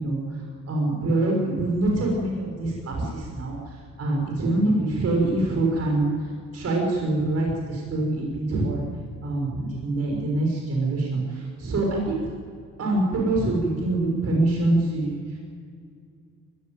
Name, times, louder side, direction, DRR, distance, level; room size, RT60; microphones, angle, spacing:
voice 1, 0.0-8.8 9.2-12.3 12.8-15.4, right 2 dB, 55° right, -1 dB, 6.2 m, -25 dB
20.5 x 17.5 x 9.4 m, 2.2 s
cardioid pair, 90°, 30 cm